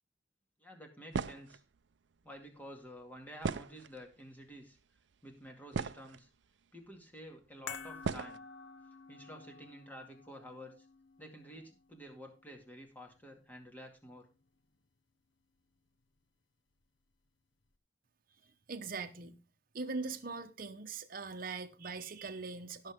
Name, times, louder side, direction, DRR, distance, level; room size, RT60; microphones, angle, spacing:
voice 1, 0.6-1.6 2.2-4.8 5.2-6.3 6.7-8.4 9.1-10.9 11.2-14.3, equal, 10° left, 2.2 m, -51 dB
sound 1, 1.1-1.6 3.4-4.1 5.0-5.1 5.5-6.3 7.2-7.3 8.0-8.4, right 4 dB, 70° right, 0.5 m, -37 dB
sound 2, 7.7-14.1 14.3-14.5, left 5 dB, 90° left, 1.0 m, -51 dB
voice 2, 18.7-19.4 19.7-22.9, right 4 dB, 50° right, 1.0 m, -41 dB
17.0 x 6.7 x 3.6 m
head